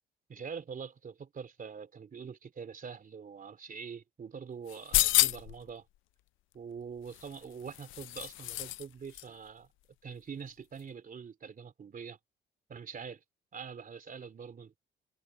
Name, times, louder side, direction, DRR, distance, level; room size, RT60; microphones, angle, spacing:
voice 1, 0.3-5.8 6.5-9.7 10.0-12.2 12.7-13.2 13.5-14.8, right 6 dB, 45° right, 3.2 m, -44 dB
sound 1, 4.7-5.6 7.1-8.8 9.1-9.2, left 17 dB, 85° left, 0.4 m, -29 dB
cardioid pair, 90°, 20 cm